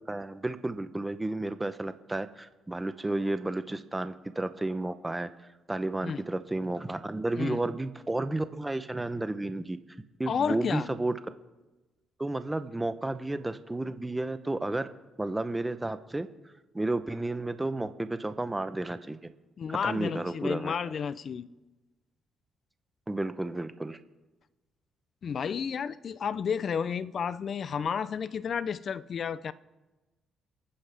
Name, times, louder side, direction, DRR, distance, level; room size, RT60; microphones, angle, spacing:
voice 1, 0.0-5.3 5.7-9.8 10.2-11.1 12.2-14.9 15.2-16.3 16.7-19.2 19.8-20.7 23.1-24.0, right 2 dB, 15° right, 0.9 m, -32 dB
voice 2, 10.3-10.9 19.6-21.5 25.2-29.5, left 7 dB, 55° left, 0.6 m, -31 dB
28.5 x 9.8 x 3.5 m
cardioid pair, 90°, 0 cm